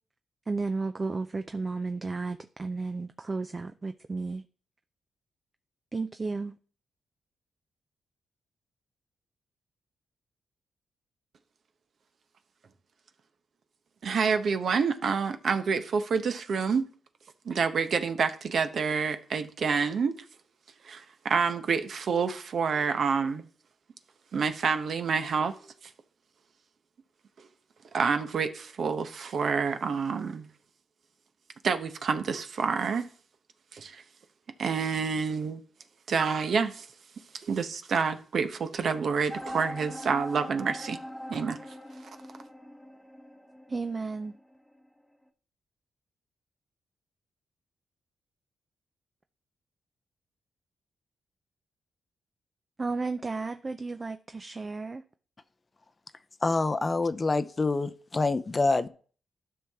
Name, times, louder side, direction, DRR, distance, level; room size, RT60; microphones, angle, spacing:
voice 1, 0.5-4.4 5.9-6.6 43.7-44.3 52.8-55.0, right 3 dB, 30° right, 0.4 m, -33 dB
voice 2, 14.0-16.9 17.4-20.1 20.8-23.4 24.3-25.7 27.9-30.5 31.6-33.1 33.7-34.0 34.6-35.6 36.1-36.9 37.3-41.0 41.3-41.6, right 5 dB, 60° right, 0.9 m, -28 dB
sound 1, 39.3-44.8, equal, 5° left, 0.9 m, -42 dB
voice 3, 56.4-58.9, left 3 dB, 30° left, 0.6 m, -26 dB
12.5 x 5.7 x 3.5 m
cardioid pair, 100°, 0 cm